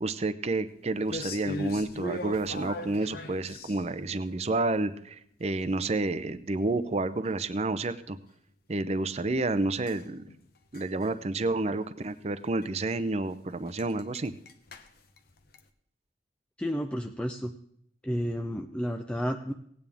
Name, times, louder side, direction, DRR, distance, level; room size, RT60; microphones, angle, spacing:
voice 1, 0.0-8.2 8.7-10.2 10.7-14.3, right 2 dB, 35° right, 12 dB, 0.6 m, -30 dB
sound 1, 1.0-4.0 9.9-11.1 11.4-11.7 11.9-12.1 12.6-12.7 12.9-13.0 13.3-13.4 13.7-15.7, left 1 dB, 60° left, 0.9 m, -39 dB
voice 2, 16.6-17.5 18.0-19.5, equal, 5° left, 3 dB, 0.5 m, -31 dB
17.5 x 9.1 x 3.5 m, 0.69 s
head